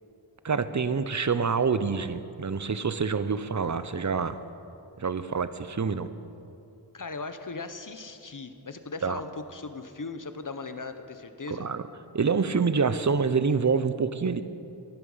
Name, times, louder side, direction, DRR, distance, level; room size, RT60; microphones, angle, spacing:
voice 1, 0.4-4.4 5.0-6.1 9.0-9.2 11.5-11.8 12.1-14.5, right 5 dB, 40° right, 12 dB, 0.7 m, -26 dB
voice 2, 6.9-11.7, left 3 dB, 45° left, 9 dB, 1.0 m, -38 dB
17.0 x 11.0 x 5.6 m, 2.7 s
wide cardioid pair, 55°, 43 cm